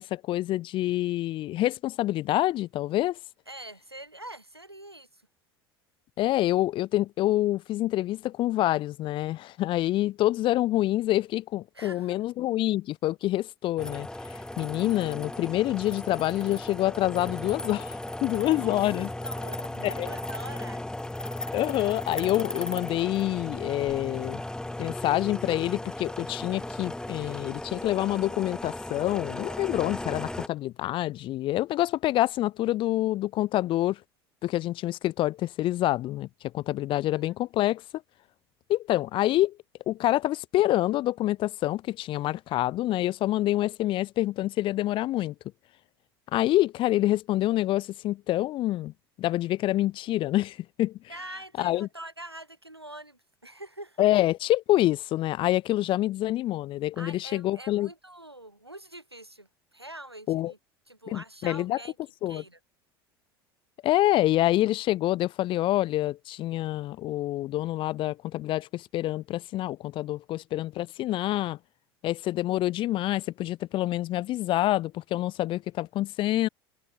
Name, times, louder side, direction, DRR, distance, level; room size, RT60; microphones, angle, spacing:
voice 1, 0.0-3.2 6.2-14.1 14.6-19.1 19.8-20.1 21.5-24.4 24.8-34.0 34.4-36.3 36.5-37.8 38.7-39.6 39.9-45.3 46.3-48.9 49.2-51.0 51.6-51.9 54.0-57.9 60.3-60.5 61.1-61.8 62.2-62.4 63.8-71.6 72.0-76.5, left 15 dB, 40° left, 0.8 m, -27 dB
voice 2, 3.5-5.2 11.7-12.2 18.6-18.7 19.2-20.8 36.9-37.3 51.1-54.1 57.0-60.6 60.9-62.0 62.3-62.6, right 1 dB, 90° right, 5.3 m, -44 dB
sound 1, 13.8-30.5, left 1 dB, 5° left, 3.6 m, -36 dB
figure-of-eight pair, 75°, 13 cm